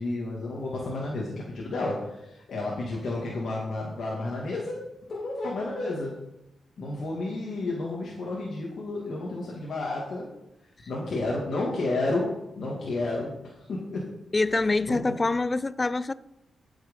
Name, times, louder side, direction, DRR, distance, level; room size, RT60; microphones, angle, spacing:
voice 1, 0.0-4.8 5.1-6.1 6.8-10.3 10.9-14.2 14.6-15.1, left 2 dB, 65° left, 2.3 m, -31 dB
voice 2, 14.3-16.1, left 3 dB, 25° left, 0.4 m, -25 dB
12.5 x 6.5 x 5.4 m
cardioid pair, 110°, 0 cm